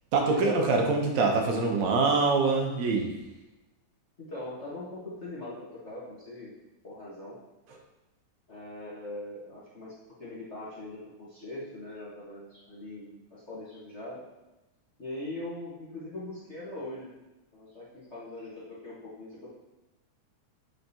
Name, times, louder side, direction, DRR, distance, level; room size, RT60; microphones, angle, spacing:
voice 1, 0.1-3.1, right 3 dB, 70° right, 1 dB, 2.0 m, -24 dB
voice 2, 4.2-5.5 5.8-6.5 6.8-7.4 8.5-9.9 10.2-14.2 15.0-17.1 17.5-19.5, left 1 dB, 45° left, -9 dB, 0.9 m, -41 dB
8.1 x 5.2 x 2.7 m, 1.0 s
omnidirectional pair, 3.5 m